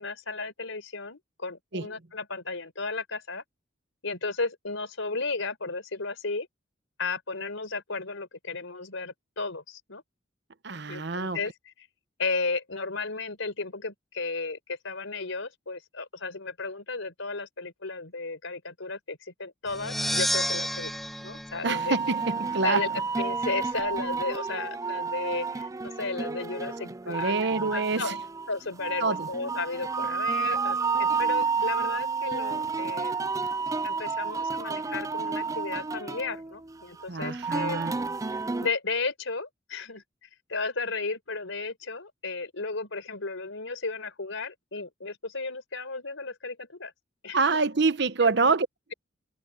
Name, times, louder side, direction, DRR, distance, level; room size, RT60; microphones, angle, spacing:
voice 1, 0.0-3.4 4.0-6.5 7.0-10.0 10.9-11.9 12.2-20.9 21.2-22.0 22.6-22.9 23.2-27.4 27.7-28.2 28.5-33.2 33.8-37.8 38.6-40.0 40.5-46.9 47.2-47.4 48.2-48.3, left 3 dB, 90° left, 4.2 m, -34 dB
voice 2, 10.6-11.4 21.6-22.8 27.1-28.1 29.0-29.3 37.1-38.1 47.3-48.7, right 4 dB, 60° right, 1.0 m, -26 dB
sound 1, 19.7-22.5, equal, ahead, 1.6 m, -31 dB
sound 2, 21.7-38.7, right 5 dB, 15° right, 0.4 m, -30 dB
head